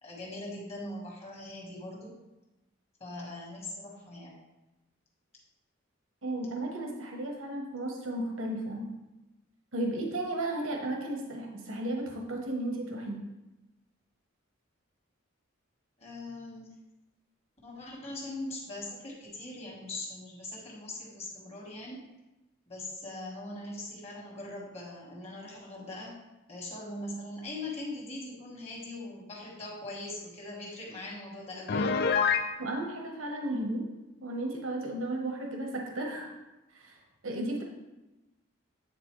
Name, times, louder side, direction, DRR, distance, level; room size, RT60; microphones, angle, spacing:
voice 1, 0.0-2.1 3.0-4.4 16.0-16.7 17.6-22.0 22.7-26.1 26.5-32.0, left 2 dB, 30° left, -4 dB, 1.6 m, -41 dB
voice 2, 6.2-8.9 9.7-13.2 32.6-33.8 34.2-36.3 36.7-37.0 37.2-37.6, right 1 dB, 80° right, 1 dB, 1.0 m, -34 dB
Piano, 31.7-32.5, left 5 dB, 50° left, 0.3 m, -26 dB
8.8 x 4.0 x 3.1 m, 1.0 s
head